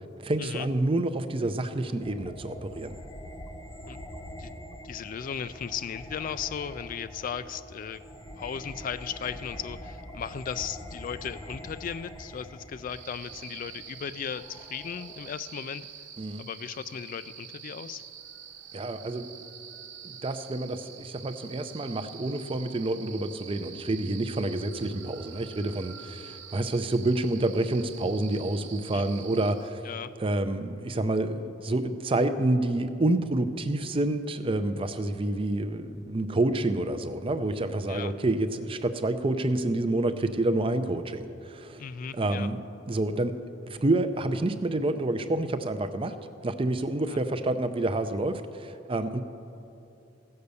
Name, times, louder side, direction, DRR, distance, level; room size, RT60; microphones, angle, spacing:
voice 1, 0.2-3.0 16.2-16.5 18.7-19.3 20.0-29.8 30.2-41.8 42.1-42.6 42.9-43.4 43.7-46.1 46.4-49.2, right 2 dB, 30° right, 10 dB, 0.5 m, -28 dB
sound 1, 2.0-15.3, equal, 20° left, 0.8 m, -44 dB
voice 2, 4.8-8.0 8.4-15.8 16.4-18.0 28.9-29.0 29.8-30.1 37.9-38.1 41.8-42.5 47.1-47.2, left 7 dB, 45° left, 13 dB, 0.3 m, -36 dB
sound 2, 12.9-29.7, right 8 dB, 70° right, 1.0 m, -46 dB
15.5 x 6.6 x 6.9 m, 2.7 s
head